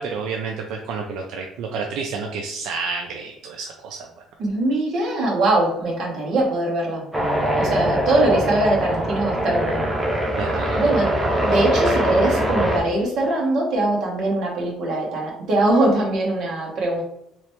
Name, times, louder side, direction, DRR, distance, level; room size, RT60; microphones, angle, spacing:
voice 1, 0.0-4.1 7.7-7.9 10.4-10.8, right 5 dB, 75° right, 2 dB, 0.4 m, -30 dB
voice 2, 4.4-7.1 7.5-9.9 10.8-11.1 11.4-17.0, right 2 dB, 50° right, -2 dB, 1.0 m, -22 dB
sound 1, 7.1-12.8, equal, 5° right, 0.6 m, -22 dB
3.2 x 3.0 x 3.0 m, 0.76 s
cardioid pair, 175°, 0 cm